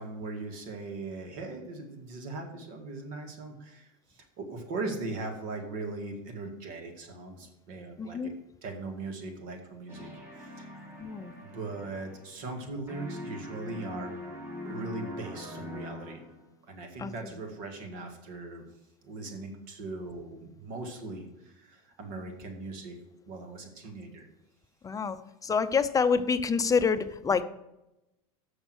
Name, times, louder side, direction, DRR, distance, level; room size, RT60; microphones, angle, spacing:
voice 1, 0.0-8.3 8.6-10.1 10.4-10.8 11.4-14.1 14.6-16.2 16.6-18.7 19.0-23.0 23.3-24.3, right 3 dB, 65° right, 4 dB, 2.0 m, -39 dB
voice 2, 8.0-8.3 11.0-11.3 17.0-17.1 24.8-27.4, left 5 dB, 20° left, 11 dB, 0.6 m, -27 dB
sound 1, 9.9-12.6 12.9-16.5, left 1 dB, 15° right, 3.1 m, -43 dB
7.3 x 6.4 x 6.2 m, 0.92 s
hypercardioid pair, 100°, 18 cm